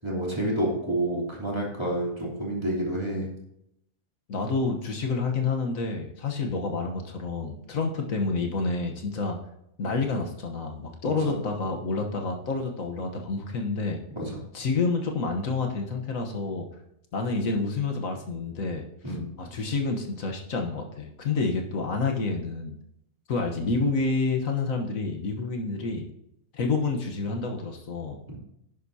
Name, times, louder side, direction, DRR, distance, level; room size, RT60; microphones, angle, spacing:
voice 1, 0.0-3.3 11.0-11.3 14.2-14.3 19.0-19.3, right 1 dB, 20° right, -4 dB, 3.2 m, -29 dB
voice 2, 4.3-9.4 9.8-14.0 14.5-16.7 17.1-22.8 23.3-26.0 26.5-28.4, left 3 dB, 70° left, 3 dB, 1.6 m, -29 dB
11.0 x 10.0 x 2.8 m, 0.77 s
omnidirectional pair, 1.5 m